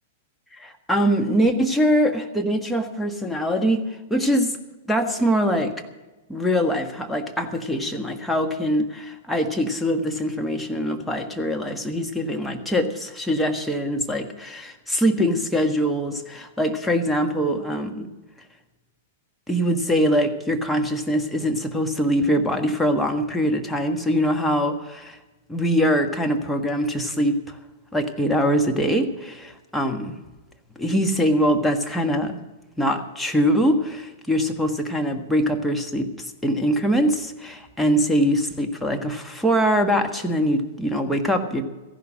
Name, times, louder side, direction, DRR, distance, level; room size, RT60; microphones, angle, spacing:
voice 1, 0.6-3.8 4.1-4.6 4.9-5.7 6.3-18.1 19.5-25.2 25.5-27.6 27.9-30.1 30.8-32.4 32.8-41.6, equal, 5° left, 3 dB, 1.5 m, -23 dB
15.0 x 11.0 x 6.4 m, 1.2 s
figure-of-eight pair, 105°, 0 cm